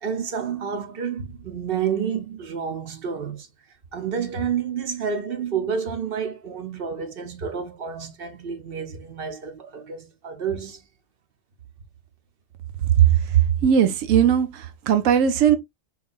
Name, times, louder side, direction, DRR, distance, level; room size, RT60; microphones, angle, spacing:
voice 1, 0.0-3.5 3.9-10.8, right 7 dB, 50° right, 0.9 m, -29 dB
voice 2, 13.6-15.6, right 9 dB, 80° right, 1.1 m, -18 dB
4.6 x 3.3 x 2.4 m
omnidirectional pair, 1.3 m